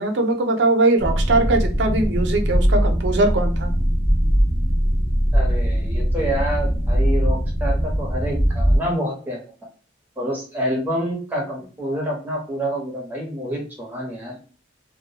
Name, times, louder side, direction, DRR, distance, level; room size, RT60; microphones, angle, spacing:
voice 1, 0.0-3.7, right 2 dB, 65° right, 5 dB, 0.5 m, -20 dB
sound 1, 1.0-8.8, equal, 20° left, 0.4 m, -20 dB
voice 2, 5.3-9.4 10.2-14.4, equal, 10° right, -1 dB, 0.8 m, -27 dB
2.2 x 2.1 x 2.8 m, 0.38 s
head